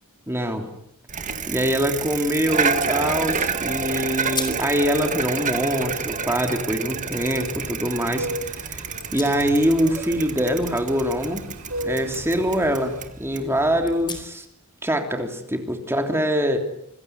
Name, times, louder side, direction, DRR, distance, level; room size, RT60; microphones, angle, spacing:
voice 1, 0.3-0.7 1.5-8.8 9.1-11.4 11.8-14.4 14.8-16.6, equal, 10° right, 4 dB, 3.2 m, -24 dB
Bicycle, 1.1-14.2, right 5 dB, 35° right, 2.0 m, -29 dB
sound 1, 4.3-4.7 5.1-6.5 7.1-7.4 8.7-9.8 10.1-11.9 12.2-12.4 12.9-13.0 13.8-14.6, left 5 dB, 20° left, 4.5 m, -39 dB
sound 2, 7.2-13.1, equal, 65° right, 4.5 m, -36 dB
26.5 x 21.0 x 9.6 m, 0.75 s
head